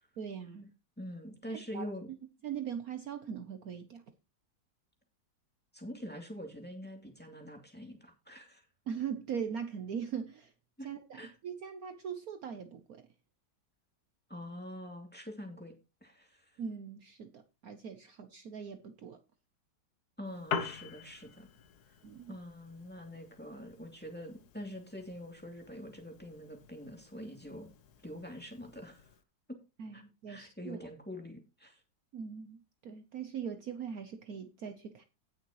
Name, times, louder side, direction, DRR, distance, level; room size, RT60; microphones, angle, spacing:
voice 1, 0.2-0.7 1.5-2.2 2.4-4.0 8.9-10.5 10.8-13.0 16.6-19.2 22.0-22.4 29.8-30.8 32.1-35.0, right 7 dB, 60° right, 1.2 m, -41 dB
voice 2, 1.0-2.1 5.7-8.7 10.8-10.9 11.1-11.3 14.3-15.8 16.0-16.6 20.2-21.5 21.9-22.0 22.3-27.7 28.0-29.1 29.5-29.6 29.9-30.0 30.3-31.8, equal, 5° left, 2.6 m, -45 dB
Piano, 20.2-29.2, left 6 dB, 65° left, 1.5 m, -45 dB
17.0 x 6.5 x 3.1 m
omnidirectional pair, 1.9 m